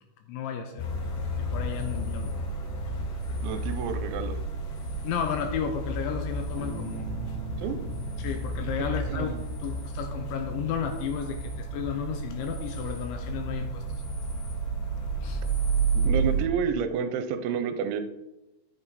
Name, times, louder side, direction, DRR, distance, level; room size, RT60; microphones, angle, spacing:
voice 1, 0.3-0.9 1.5-2.3 5.0-7.1 8.2-9.3 9.6-13.8 15.2-15.4, left 8 dB, 80° left, 6 dB, 2.8 m, -33 dB
sound 1, 0.8-16.5, right 3 dB, 65° left, 2.8 m, -31 dB
sound 2, 1.7-2.4 3.2-4.0 4.7-5.5 6.3-7.1 7.8-8.6 9.3-10.1 10.8-11.6 12.4-13.1 13.8-14.6 15.4-16.1, left 3 dB, 45° left, 2.4 m, -52 dB
voice 2, 3.4-4.4 7.6-7.8 9.1-9.4 16.0-18.0, right 7 dB, 80° right, 9 dB, 2.9 m, -29 dB
Bass guitar, 6.5-10.3, right 4 dB, 20° right, 2.1 m, -43 dB
12.0 x 8.0 x 4.1 m, 0.94 s
omnidirectional pair, 5.9 m